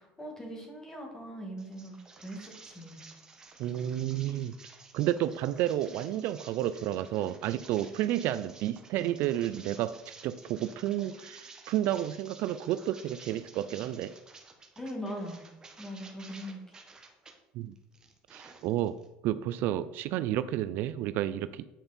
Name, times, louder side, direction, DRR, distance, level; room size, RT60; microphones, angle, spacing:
voice 1, 0.0-3.0 14.8-15.4 15.8-16.6, equal, 15° left, 1 dB, 2.2 m, -41 dB
sound 1, 1.6-17.3 17.8-19.1, right 4 dB, 20° right, 1.3 m, -53 dB
voice 2, 3.6-4.6 4.9-14.1 17.5-17.7 18.3-19.0 19.2-21.7, right 12 dB, 60° right, 14 dB, 0.4 m, -31 dB
9.2 x 5.2 x 4.3 m, 1.0 s
cardioid pair, 145°, 4 cm